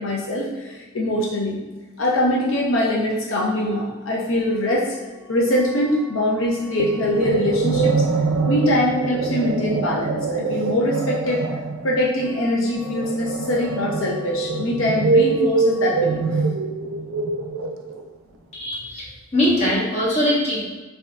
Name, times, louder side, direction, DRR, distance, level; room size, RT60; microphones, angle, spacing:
voice 1, 0.0-1.6 2.0-8.0 8.5-11.4 11.8-16.4, left 1 dB, 75° left, -4 dB, 0.6 m, -23 dB
sound 1, 6.8-18.1, right 4 dB, 85° right, 0.4 m, -24 dB
voice 2, 18.5-20.6, left 1 dB, 35° left, -6 dB, 1.1 m, -21 dB
5.4 x 2.7 x 2.4 m, 1.2 s
head